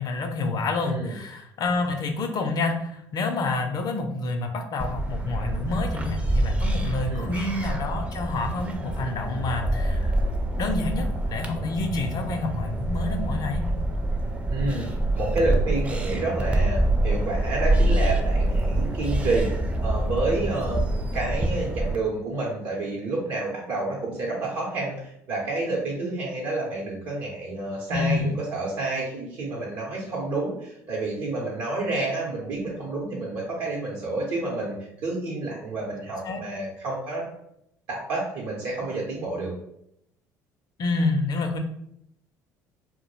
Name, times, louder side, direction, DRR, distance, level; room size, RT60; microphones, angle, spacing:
voice 1, 0.0-10.2 10.6-13.6 27.9-28.4 36.2-36.4 40.8-41.6, left 3 dB, 50° left, 5 dB, 0.5 m, -28 dB
voice 2, 0.8-1.2 7.1-7.3 14.5-19.5 19.8-20.8 21.1-34.8 35.0-37.3 37.9-39.5, right 2 dB, 70° right, -4 dB, 0.7 m, -29 dB
sound 1, 4.8-22.0, right 1 dB, 15° right, 0.4 m, -26 dB
2.2 x 2.1 x 3.0 m, 0.75 s
hypercardioid pair, 65°, 9 cm